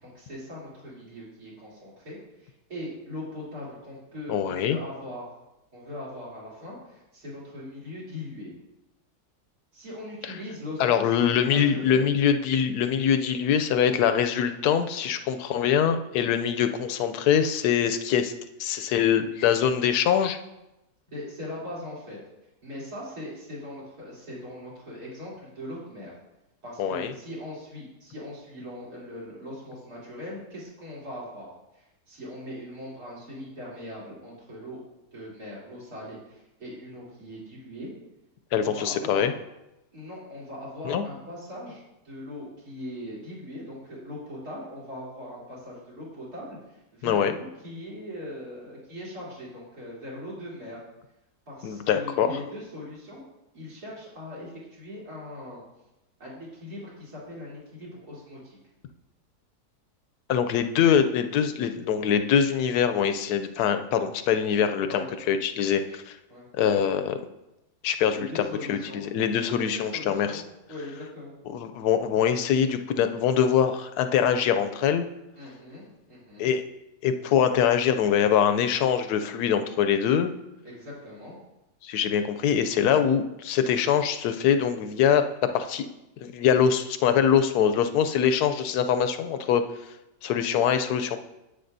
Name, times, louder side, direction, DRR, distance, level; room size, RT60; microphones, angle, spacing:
voice 1, 0.0-5.3 5.7-8.5 9.7-12.0 21.1-22.2 22.6-26.1 26.6-31.5 31.7-34.8 35.1-37.9 38.6-39.2 39.9-50.8 51.5-53.2 53.5-55.6 56.2-58.6 64.9-65.1 66.3-66.5 68.1-69.0 69.5-71.3 75.4-76.5 80.6-81.4, left 1 dB, 65° right, -6 dB, 3.8 m, -40 dB
voice 2, 4.3-4.8 10.8-18.3 18.6-20.4 26.8-27.1 38.5-39.3 40.8-41.1 47.0-47.3 51.6-52.3 60.3-66.2 66.6-67.2 67.8-70.4 71.5-75.1 76.4-76.6 77.0-80.3 81.8-85.2 85.5-85.9 86.2-89.6 90.2-91.2, left 8 dB, 75° left, 9 dB, 1.1 m, -23 dB
10.0 x 8.3 x 2.7 m, 0.93 s
omnidirectional pair, 1.7 m